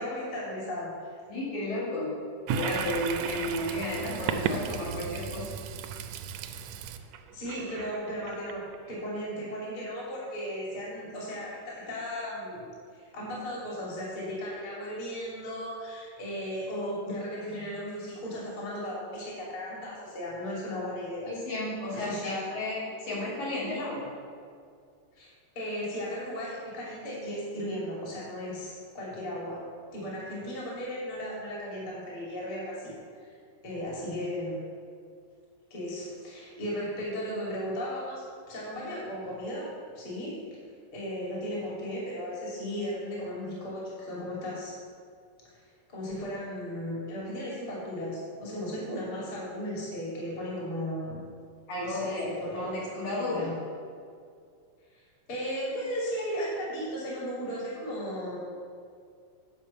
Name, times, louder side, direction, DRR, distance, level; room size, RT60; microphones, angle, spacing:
voice 1, 0.0-1.1 7.3-8.6 8.9-12.6 12.9-21.3 21.9-22.5 25.2-25.3 25.5-29.6 29.9-32.9 33.2-33.3 33.6-34.5 35.7-40.4 40.9-44.7 45.4-45.6 45.9-51.2 51.8-52.8 53.1-53.5 54.9-55.0 55.3-58.4, equal, 45° left, -5 dB, 3.4 m, -36 dB
voice 2, 1.3-2.2 2.5-5.5 21.3-24.1 51.7-53.5, left 1 dB, 75° left, -7 dB, 3.7 m, -33 dB
Toilet flush, 2.5-9.0, right 7 dB, 80° right, 1.5 m, -35 dB
10.5 x 5.5 x 6.9 m, 2.2 s
omnidirectional pair, 3.5 m